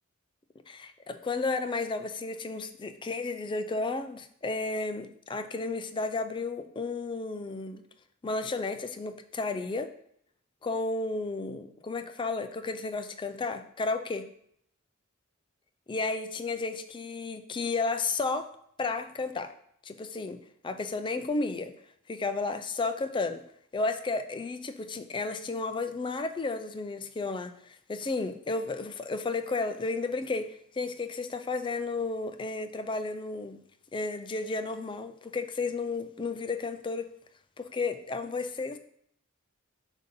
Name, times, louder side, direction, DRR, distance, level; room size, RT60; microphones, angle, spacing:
voice 1, 0.7-7.8 8.2-9.9 10.6-14.3 15.9-18.5 18.8-19.5 19.8-21.7 22.1-23.4 23.7-33.6 33.9-37.1 37.6-38.8, left 3 dB, 25° left, 9 dB, 0.4 m, -33 dB
7.5 x 2.7 x 5.2 m, 0.69 s
head